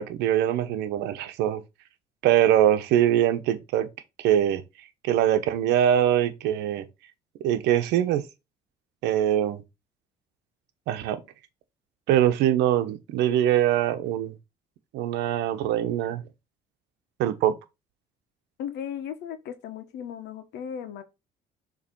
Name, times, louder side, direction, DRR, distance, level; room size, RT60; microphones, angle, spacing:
voice 1, 0.0-1.6 2.2-3.9 4.2-4.6 5.0-6.9 7.4-8.2 9.0-9.6 10.9-11.2 12.1-14.4 14.9-16.2 17.2-17.5, right 11 dB, 90° right, 1.0 m, -23 dB
voice 2, 18.6-21.0, left 8 dB, 80° left, 1.3 m, -36 dB
6.8 x 3.3 x 4.6 m
cardioid pair, 110°, 17 cm